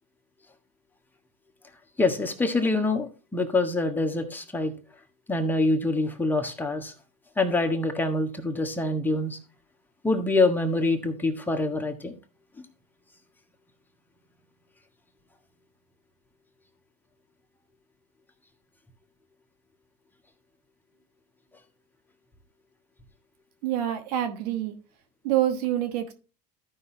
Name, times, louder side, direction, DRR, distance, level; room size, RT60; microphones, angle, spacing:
voice 1, 2.0-4.7 5.3-6.9 7.4-9.4 10.0-12.2, left 2 dB, 10° left, 1.4 m, -25 dB
voice 2, 23.6-24.7 25.2-26.1, right 12 dB, 70° right, 1.3 m, -26 dB
14.5 x 5.6 x 2.8 m
hypercardioid pair, 100°, 20 cm